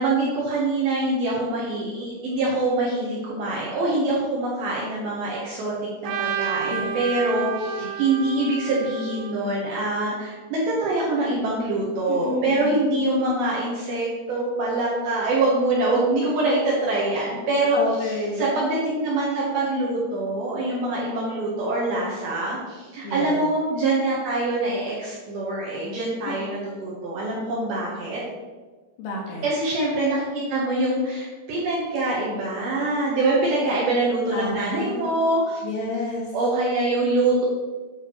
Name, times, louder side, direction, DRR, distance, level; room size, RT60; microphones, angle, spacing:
voice 1, 0.0-5.7 6.0-17.8 18.0-28.2 29.4-35.6 36.3-37.5, right 2 dB, 70° right, -5 dB, 2.4 m, -24 dB
Trumpet, 6.0-10.2, right 8 dB, 90° right, 3.2 m, -31 dB
voice 2, 12.1-12.8 17.7-18.5 23.0-23.4 26.2-26.5 29.0-29.5 34.3-35.2 35.6-36.3, left 2 dB, 75° left, -2 dB, 2.7 m, -30 dB
9.0 x 5.7 x 3.0 m, 1.3 s
omnidirectional pair, 5.5 m